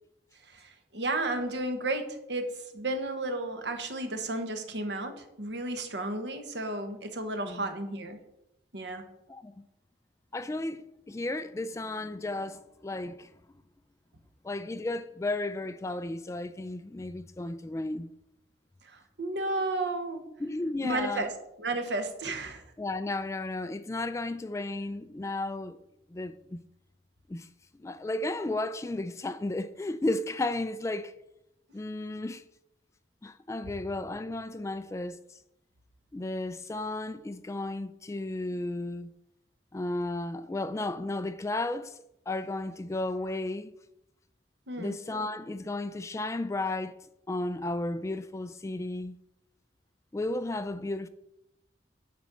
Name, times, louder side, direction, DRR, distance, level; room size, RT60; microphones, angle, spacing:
voice 1, 0.5-8.2 8.7-9.0 18.8-20.2 20.8-21.3 21.6-22.6 44.7-45.0, right 2 dB, 75° right, 1.2 m, -33 dB
voice 2, 10.3-13.3 14.4-18.1 20.4-21.3 22.8-25.8 26.1-26.6 27.3-27.5 27.8-31.1 31.7-32.4 33.2-35.4 36.1-39.1 39.7-42.0 42.3-43.7 44.8-47.0 47.3-49.2 50.1-51.1, left 2 dB, 15° left, 0.3 m, -34 dB
9.5 x 4.2 x 6.1 m
head